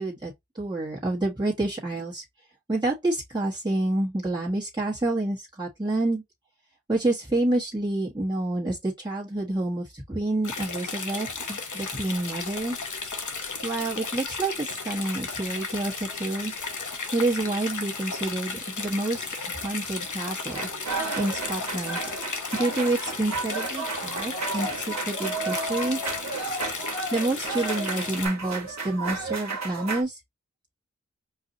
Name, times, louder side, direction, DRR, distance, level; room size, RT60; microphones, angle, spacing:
voice 1, 0.0-2.2 2.7-6.2 6.9-12.8 13.6-16.5 17.1-20.6 21.2-22.0 22.5-26.0 27.1-30.2, right 2 dB, 15° right, 1.5 m, -28 dB
sound 1, 10.4-28.3, left 4 dB, 75° left, 0.9 m, -34 dB
sound 2, 20.5-30.0, right 3 dB, 60° right, 1.3 m, -32 dB
4.7 x 2.6 x 2.7 m
cardioid pair, 40°, 30 cm